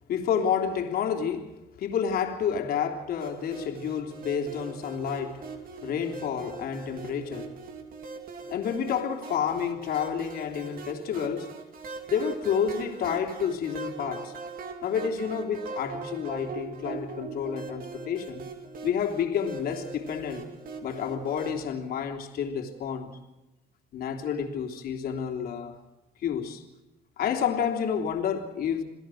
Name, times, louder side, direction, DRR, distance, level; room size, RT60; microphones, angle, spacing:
voice 1, 0.1-7.6 8.5-11.5 12.1-14.4 14.8-18.5 18.8-20.5 20.8-23.2 23.9-25.8 26.2-26.6 27.2-28.8, left 7 dB, 65° left, 3.4 m, -30 dB
sound 1, 3.2-21.6, right 4 dB, 60° right, 3.4 m, -41 dB
28.0 x 17.0 x 6.4 m
cardioid pair, 110°, 17 cm